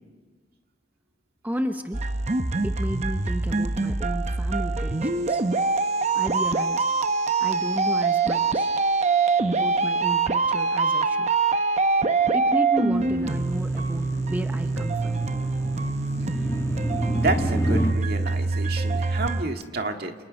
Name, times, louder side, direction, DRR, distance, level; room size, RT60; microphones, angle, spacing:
voice 1, 1.4-2.0 2.6-5.4 6.1-6.9 7.4-8.7 9.5-11.3 12.3-15.2, equal, 10° right, 7 dB, 0.8 m, -32 dB
sound 1, 1.9-19.4, right 3 dB, 40° right, 0.8 m, -24 dB
sound 2, 12.9-17.9, equal, 15° left, 1.7 m, -31 dB
voice 2, 17.2-20.2, right 2 dB, 55° right, 4 dB, 2.0 m, -30 dB
29.0 x 28.0 x 5.3 m, 1.4 s
head